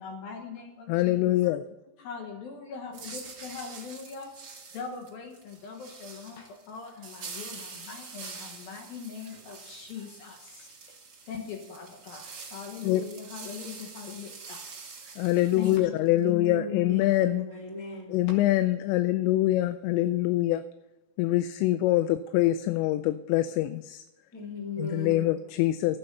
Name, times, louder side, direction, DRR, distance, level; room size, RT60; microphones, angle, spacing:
voice 1, 0.0-1.3 2.0-4.3 4.7-11.0 11.3-14.7 15.0-15.2 15.6-16.0 18.3-18.4, left 6 dB, 65° left, 3 dB, 2.6 m, -41 dB
voice 2, 0.9-1.6 12.8-13.0 15.2-17.5 18.1-20.6 21.2-24.0 24.8-26.0, left 15 dB, 85° left, 11 dB, 2.8 m, -24 dB
sound 1, 2.9-15.8, right 4 dB, 60° right, 1.0 m, -45 dB
voice 3, 16.1-18.1 24.3-25.3, left 3 dB, 10° left, -1 dB, 1.0 m, -37 dB
11.5 x 8.9 x 6.7 m, 1.0 s
omnidirectional pair, 5.2 m